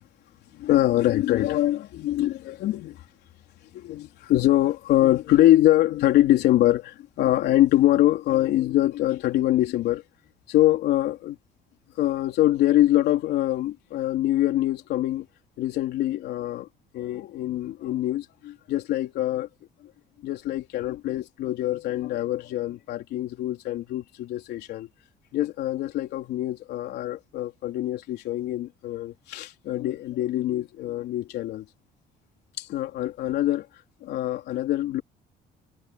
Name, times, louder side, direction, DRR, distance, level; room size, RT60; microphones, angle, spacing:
voice 1, 0.5-3.0 3.7-10.0 10.5-11.4 12.0-15.3 15.6-16.7 16.9-19.5 20.2-24.9 25.3-31.6 32.6-33.7 34.0-35.0, left 14 dB, 75° left, 4.0 m, -24 dB
cardioid pair, 110°, 17 cm